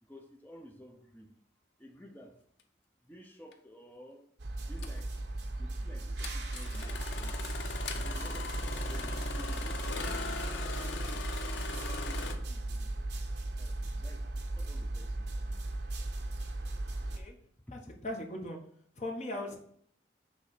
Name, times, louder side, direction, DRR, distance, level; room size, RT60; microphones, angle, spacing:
voice 1, 0.0-1.3 1.8-2.4 3.0-4.3 4.6-5.2 5.6-7.4 7.9-13.1 13.6-15.6 17.7-17.9, equal, 10° left, 2 dB, 0.8 m, -53 dB
Engine starting, 3.5-3.6 4.8-5.0 6.2-12.4, left 4 dB, 85° left, 0.8 m, -40 dB
sound 1, 4.4-17.2, right 2 dB, 70° right, 0.8 m, -36 dB
voice 2, 16.9-17.4 17.7-18.6 18.9-19.6, left 1 dB, 40° left, 1 dB, 1.3 m, -39 dB
6.6 x 3.4 x 5.0 m, 0.64 s
head